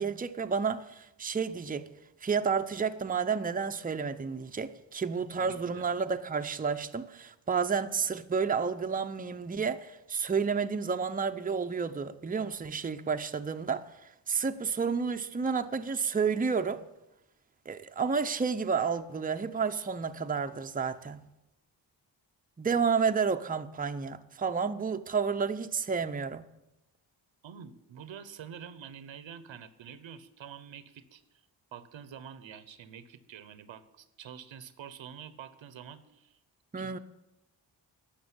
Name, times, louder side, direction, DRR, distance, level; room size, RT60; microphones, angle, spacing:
voice 1, 0.0-1.9 2.2-13.9 14.3-16.8 17.7-21.2 22.6-26.5 36.7-37.0, right 5 dB, 20° right, 0.6 m, -30 dB
voice 2, 5.4-5.9 27.4-31.4 31.7-36.4 36.8-37.0, right 8 dB, 90° right, 1.0 m, -47 dB
11.5 x 6.7 x 9.6 m
cardioid pair, 85°, 45 cm